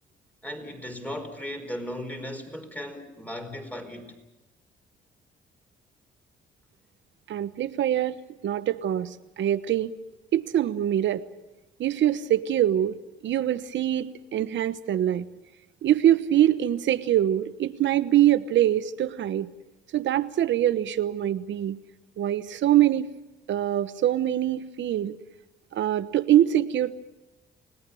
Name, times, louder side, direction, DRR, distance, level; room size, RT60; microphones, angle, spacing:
voice 1, 0.4-4.2, left 1 dB, 5° left, 4.7 m, -36 dB
voice 2, 7.3-9.9 10.3-11.2 11.8-12.9 13.2-15.3 15.8-19.5 19.9-21.8 22.2-23.1 23.5-25.1 25.7-27.0, right 12 dB, 70° right, 1.1 m, -24 dB
30.0 x 18.5 x 7.1 m
cardioid pair, 90°, 20 cm